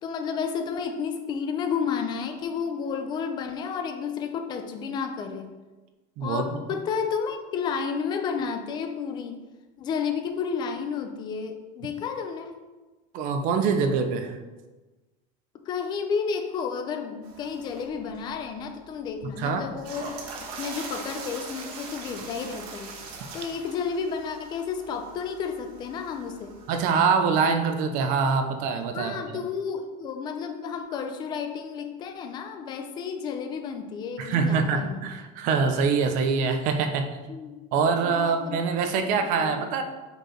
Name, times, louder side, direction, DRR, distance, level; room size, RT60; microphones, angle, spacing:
voice 1, 0.0-5.5 6.2-9.4 9.8-12.6 15.7-20.2 20.6-23.0 23.3-26.5 28.9-35.1 37.3-37.5 38.0-38.6 39.2-39.5, left 6 dB, 20° left, 6 dB, 0.4 m, -31 dB
voice 2, 13.1-14.4 19.4-19.6 26.7-29.4 34.2-37.1 37.7-39.8, right 5 dB, 40° right, 7 dB, 0.6 m, -24 dB
sound 1, 17.2-26.9, right 4 dB, 70° right, 1.2 m, -42 dB
5.3 x 4.6 x 4.3 m, 1.2 s
cardioid pair, 180°, 20 cm